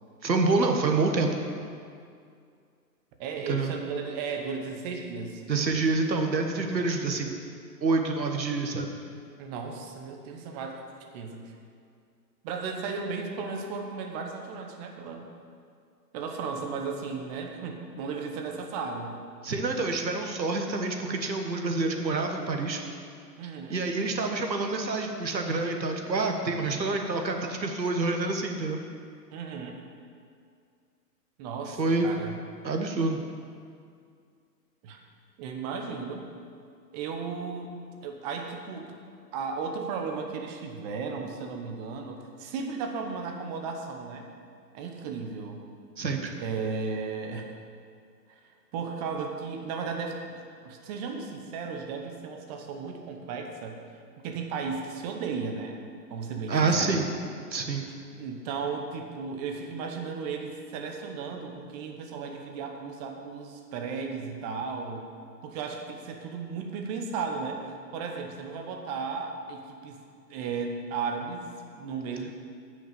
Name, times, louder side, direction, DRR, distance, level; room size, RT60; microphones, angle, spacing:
voice 1, 0.2-1.3 3.5-3.7 5.5-7.3 7.8-8.9 19.4-22.8 23.7-28.8 31.8-32.1 32.6-33.2 46.0-46.3 56.5-57.1 57.5-57.9, right 3 dB, 90° right, 4 dB, 1.5 m, -27 dB
voice 2, 3.2-5.4 6.6-6.7 9.4-10.8 11.1-11.5 12.4-15.3 16.1-19.2 23.4-23.8 29.3-29.8 31.4-32.4 34.8-35.0 35.4-36.2 36.9-37.7 38.0-38.9 39.3-44.3 44.7-45.6 46.3-47.5 48.3-53.8 54.2-55.8 56.1-57.1 57.9-65.1 65.4-67.6 67.9-70.0 70.3-72.3, right 5 dB, 25° right, 3 dB, 1.0 m, -35 dB
9.1 x 6.3 x 7.5 m, 2.3 s
hypercardioid pair, 130°, 50 cm